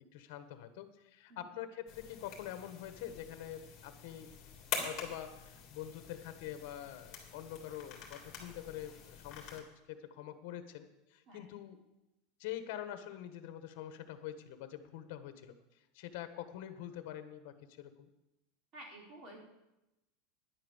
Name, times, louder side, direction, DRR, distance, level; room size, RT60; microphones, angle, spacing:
voice 1, 0.1-4.3 4.8-11.8 12.4-15.5 15.9-18.1, left 11 dB, 60° left, 9 dB, 1.4 m, -45 dB
sound 1, 1.9-9.6, left 7 dB, 35° left, 3.1 m, -46 dB
voice 2, 18.7-19.4, right 1 dB, 35° right, -1 dB, 4.1 m, -51 dB
10.5 x 9.0 x 7.3 m, 0.94 s
supercardioid pair, 155°, 0 cm